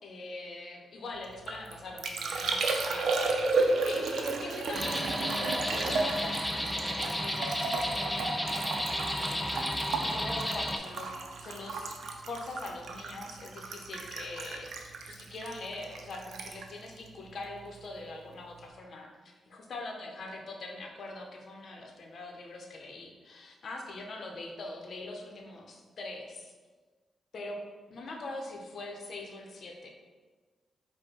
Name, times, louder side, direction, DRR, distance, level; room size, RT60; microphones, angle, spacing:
voice 1, 0.0-8.4 9.0-12.0 12.3-26.5 27.3-27.6 27.9-29.9, left 2 dB, 65° left, 1 dB, 0.7 m, -43 dB
Liquid, 1.2-17.9 18.1-18.7, right 3 dB, 75° right, 0.5 m, -33 dB
sound 1, 4.7-10.8, left 1 dB, 10° left, 0.5 m, -33 dB
5.0 x 2.2 x 4.5 m, 1.4 s
cardioid pair, 65°, 0 cm